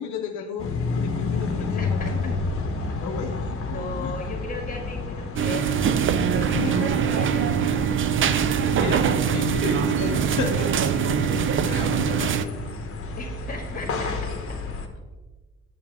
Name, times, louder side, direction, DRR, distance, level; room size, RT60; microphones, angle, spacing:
voice 1, 0.0-2.4 3.0-4.3 6.5-7.0 7.5-7.8 8.7-12.9, left 6 dB, 70° left, 2 dB, 0.7 m, -33 dB
sound 1, 0.6-14.9, left 3 dB, 45° left, 1.1 m, -31 dB
voice 2, 1.6-2.1 3.7-5.9 6.2-7.5 8.4-8.9 13.2-14.6, left 3 dB, 30° left, 2 dB, 1.9 m, -36 dB
sound 2, 5.4-12.4, right 8 dB, 45° right, 0.5 m, -23 dB
8.6 x 5.6 x 3.4 m, 1.3 s
cardioid pair, 90°, 30 cm